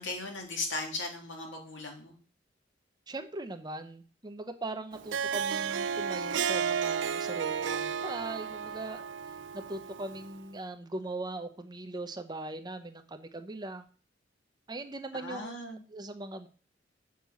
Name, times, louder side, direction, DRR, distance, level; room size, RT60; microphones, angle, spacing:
voice 1, 0.0-2.1 15.2-15.8, left 2 dB, 85° left, 1 dB, 2.5 m, -37 dB
voice 2, 3.1-13.9 14.7-16.5, right 2 dB, 25° right, 8 dB, 0.7 m, -40 dB
Harp, 4.9-10.4, right 7 dB, 75° right, 0.4 m, -33 dB
6.3 x 5.2 x 7.0 m, 0.40 s
head